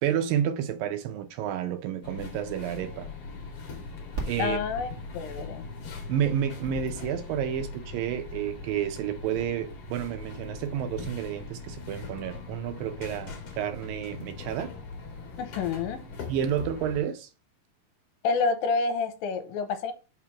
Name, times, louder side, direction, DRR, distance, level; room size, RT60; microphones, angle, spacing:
voice 1, 0.0-3.1 4.3-4.6 6.1-14.7 16.3-17.3, right 9 dB, 75° right, 2.3 m, -30 dB
sound 1, 2.0-17.0, left 4 dB, 55° left, 2.1 m, -41 dB
sound 2, 3.0-13.7, right 1 dB, 40° right, 1.4 m, -45 dB
voice 2, 4.4-5.7 15.4-16.0 18.2-19.9, left 4 dB, 80° left, 2.5 m, -28 dB
5.7 x 3.3 x 5.7 m
omnidirectional pair, 4.4 m